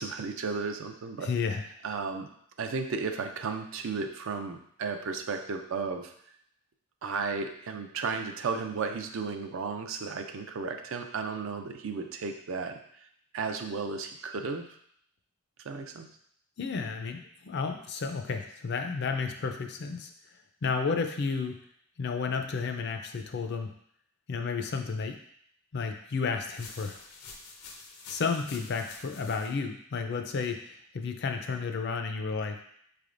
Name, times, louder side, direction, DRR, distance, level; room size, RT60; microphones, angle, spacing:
voice 1, 0.0-1.3 1.8-2.3 2.6-6.1 7.0-12.8 13.3-14.6 15.6-16.1, right 4 dB, 60° right, 6 dB, 0.4 m, -34 dB
voice 2, 1.2-1.6 16.6-20.1 20.6-21.6 22.0-23.7 24.3-25.2 25.7-27.0 28.1-32.6, left 5 dB, 50° left, 5 dB, 0.4 m, -32 dB
sound 1, 26.4-29.5, left 4 dB, 85° left, 0.6 m, -47 dB
4.9 x 3.3 x 2.5 m, 0.67 s
head